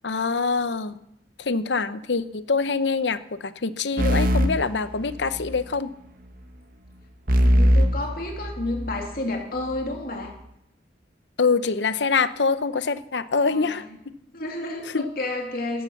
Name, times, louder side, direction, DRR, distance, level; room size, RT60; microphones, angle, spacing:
voice 1, 0.0-0.9 1.4-5.9 11.4-14.1 14.9-15.1, left 4 dB, 80° left, 14 dB, 0.8 m, -25 dB
sound 1, 4.0-5.6 7.3-9.0, equal, 55° right, 1.7 m, -21 dB
voice 2, 7.4-10.3 13.4-14.0 14.3-15.8, left 2 dB, 55° left, 2 dB, 2.7 m, -31 dB
16.0 x 12.5 x 7.1 m, 0.81 s
head